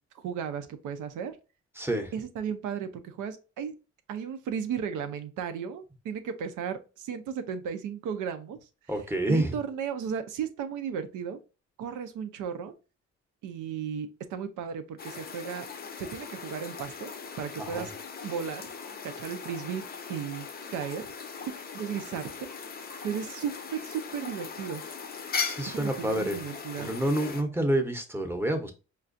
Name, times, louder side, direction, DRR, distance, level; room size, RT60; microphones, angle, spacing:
voice 1, 0.2-1.4 2.1-3.7 4.1-8.6 8.9-11.4 11.8-12.7 13.4-15.7 16.0-17.1 17.4-17.9 18.2-18.7 19.0-19.8 20.1-20.5 20.7-21.1 21.5-22.5 23.0-24.8 25.7-26.9, right 7 dB, 85° right, 9 dB, 0.6 m, -35 dB
voice 2, 1.8-2.1 8.9-9.6 17.6-17.9 25.4-26.4 26.8-28.7, right 1 dB, 10° right, 4 dB, 0.7 m, -28 dB
sound 1, 15.0-27.4, left 5 dB, 30° left, 0.5 m, -39 dB
4.4 x 2.4 x 2.5 m, 0.32 s
cardioid pair, 90°, 30 cm